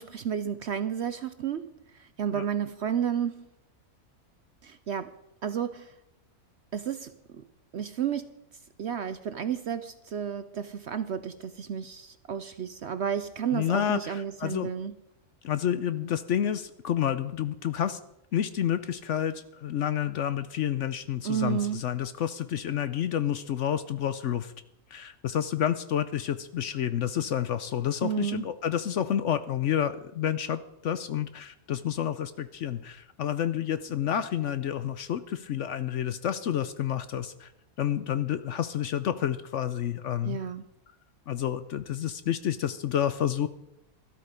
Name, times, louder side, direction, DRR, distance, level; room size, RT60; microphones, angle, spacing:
voice 1, 0.0-1.7 2.0-3.5 4.6-5.1 5.4-5.9 6.7-7.4 7.7-8.3 8.8-14.9 21.2-21.8 28.0-28.4 40.2-40.6, right 8 dB, 60° right, 12 dB, 0.7 m, -31 dB
voice 2, 13.5-14.7 15.4-18.0 18.3-24.5 24.9-37.5 37.8-40.4 41.3-43.5, left 10 dB, 65° left, 13 dB, 0.8 m, -29 dB
13.0 x 12.5 x 5.1 m, 0.84 s
omnidirectional pair, 1.6 m